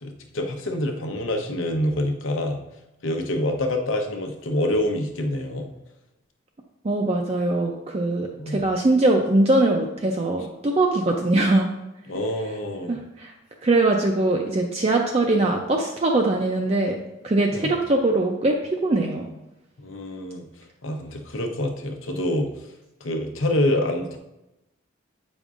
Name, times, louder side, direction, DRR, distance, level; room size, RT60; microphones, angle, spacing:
voice 1, 0.0-2.6 3.0-5.7 8.4-8.6 12.1-13.0 17.5-17.7 19.8-20.5 20.8-22.5 23.0-24.2, left 1 dB, 80° left, 4 dB, 0.8 m, -26 dB
voice 2, 6.8-11.7 12.9-13.3 13.6-17.0 17.2-19.3, right 2 dB, 30° right, 1 dB, 0.4 m, -22 dB
8.1 x 5.3 x 2.5 m, 0.94 s
head